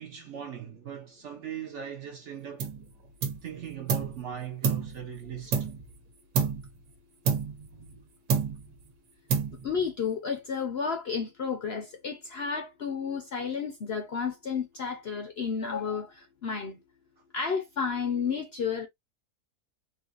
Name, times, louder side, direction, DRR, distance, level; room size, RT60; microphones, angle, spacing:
voice 1, 0.0-2.7 3.4-5.7, right 9 dB, 60° right, 0.8 m, -39 dB
sound 1, 2.6-2.9 3.2-4.2 4.6-6.0 6.3-6.8 7.3-8.0 8.3-8.8 9.3-9.9, right 6 dB, 90° right, 1.4 m, -29 dB
voice 2, 9.6-16.8 17.3-18.9, left 6 dB, 55° left, 0.7 m, -32 dB
3.9 x 2.4 x 2.5 m
omnidirectional pair, 1.7 m